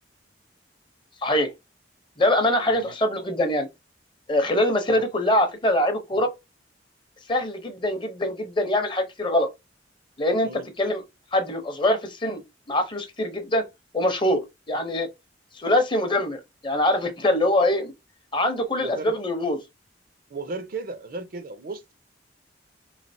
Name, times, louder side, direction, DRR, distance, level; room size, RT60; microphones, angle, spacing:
voice 1, 1.2-1.5 2.2-3.7 4.3-6.3 7.3-9.5 10.2-10.5 10.8-11.0 11.3-12.4 12.7-13.6 13.9-15.1 15.5-17.9 18.3-19.6, left 1 dB, 25° left, 0.6 m, -23 dB
voice 2, 2.6-3.0 4.9-5.1 6.1-6.2 10.4-10.7 18.8-19.2 20.3-21.9, right 3 dB, 50° right, 0.5 m, -35 dB
3.5 x 3.1 x 2.6 m
head